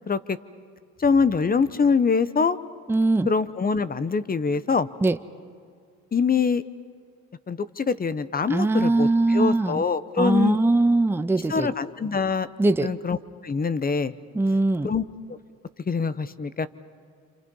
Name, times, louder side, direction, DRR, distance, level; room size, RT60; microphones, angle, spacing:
voice 1, 0.1-0.4 1.0-2.6 3.3-4.9 6.1-6.6 7.5-10.6 11.5-12.5 12.8-13.2 13.4-14.1 14.8-15.0 15.3-15.4 15.9-16.7, left 5 dB, 30° left, 15 dB, 0.9 m, -24 dB
voice 2, 2.9-3.3 5.0-5.2 8.5-9.8 10.2-11.7 12.6-12.9 14.3-14.9, right 2 dB, 10° right, 11 dB, 0.6 m, -21 dB
28.5 x 27.5 x 5.5 m, 2.2 s
cardioid pair, 90°, 30 cm